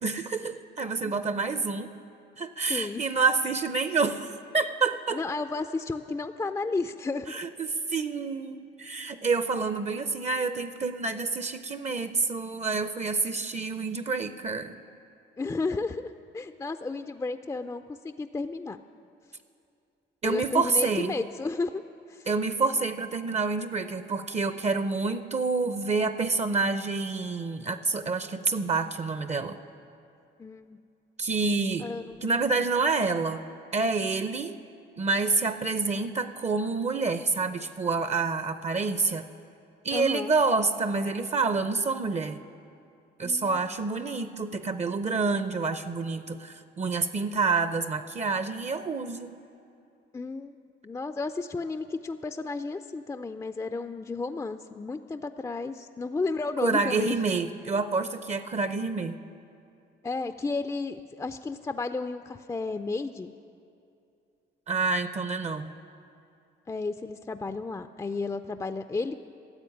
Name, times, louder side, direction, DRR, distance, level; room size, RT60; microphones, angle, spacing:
voice 1, 0.0-1.9 2.4-5.2 7.3-14.8 20.2-21.2 22.3-29.6 31.2-31.9 32.2-33.4 33.7-34.6 35.0-39.2 39.8-42.4 43.2-49.3 56.6-59.2 64.7-65.7, right 4 dB, 35° right, 11 dB, 0.6 m, -28 dB
voice 2, 2.7-3.1 5.1-7.4 15.4-18.8 20.2-21.8 22.1-22.3 30.4-30.8 31.8-32.4 39.9-40.3 43.2-43.5 44.0-44.2 50.1-50.6 50.8-57.2 60.0-63.3 66.7-69.1, left 3 dB, 15° left, 10 dB, 0.4 m, -33 dB
13.0 x 7.8 x 9.8 m, 2.6 s
cardioid pair, 90°, 20 cm